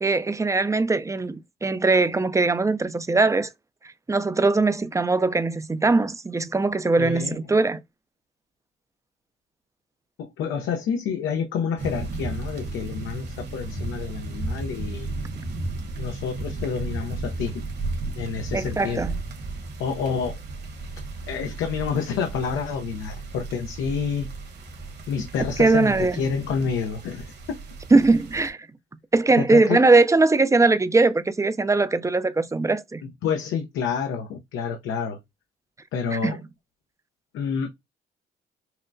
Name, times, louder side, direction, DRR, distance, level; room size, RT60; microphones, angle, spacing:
voice 1, 0.0-3.5 4.1-7.8 18.5-19.2 25.6-26.2 27.9-28.6 29.1-33.0 36.2-36.4, right 3 dB, 15° right, 0.4 m, -20 dB
voice 2, 7.0-7.4 10.2-15.1 16.0-17.7 18.1-19.1 19.8-20.4 21.3-24.3 25.1-27.6 29.4-29.9 33.2-35.2 35.9-36.4 37.3-37.7, left 6 dB, 85° left, 0.7 m, -28 dB
sound 1, 11.8-28.5, right 2 dB, 55° right, 1.4 m, -34 dB
5.6 x 2.1 x 2.6 m
cardioid pair, 90°, 20 cm